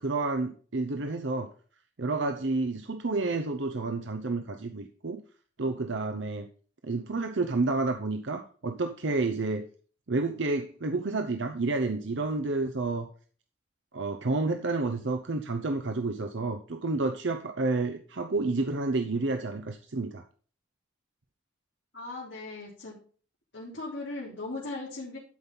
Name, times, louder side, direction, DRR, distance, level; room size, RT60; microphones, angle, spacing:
voice 1, 0.0-1.5 2.0-5.2 5.6-6.5 6.8-9.7 10.1-13.1 13.9-20.2, right 3 dB, 75° right, 6 dB, 0.8 m, -30 dB
voice 2, 21.9-22.9 23.5-25.2, left 2 dB, 70° left, -7 dB, 3.5 m, -38 dB
12.5 x 5.3 x 3.9 m, 0.41 s
head